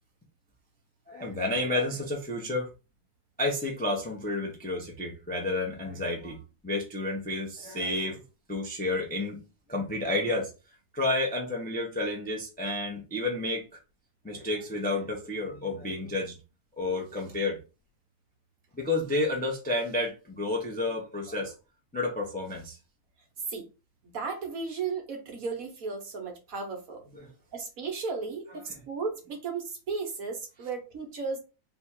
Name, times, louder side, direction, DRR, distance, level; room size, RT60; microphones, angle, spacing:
voice 1, 1.1-2.7 3.4-6.4 6.6-8.2 8.5-9.4 9.7-10.5 10.9-13.7 14.2-16.3 16.8-17.6 18.7-21.5 21.9-22.8 27.1-27.3 28.7-28.8, left 2 dB, 10° left, 0.6 m, -30 dB
voice 2, 24.0-27.0 27.5-31.4, right 4 dB, 60° right, 1.4 m, -35 dB
3.5 x 2.4 x 4.4 m
omnidirectional pair, 1.8 m